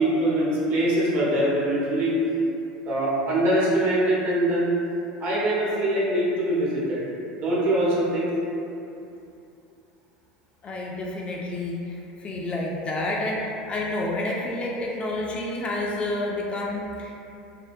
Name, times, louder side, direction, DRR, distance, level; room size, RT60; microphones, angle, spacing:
voice 1, 0.0-2.1 2.8-4.7 5.2-7.0 7.3-8.3, right 1 dB, 50° right, -7 dB, 0.8 m, -23 dB
voice 2, 10.6-17.2, left 2 dB, 30° left, -3 dB, 0.3 m, -29 dB
2.4 x 2.1 x 2.5 m, 2.7 s
hypercardioid pair, 100°, 4 cm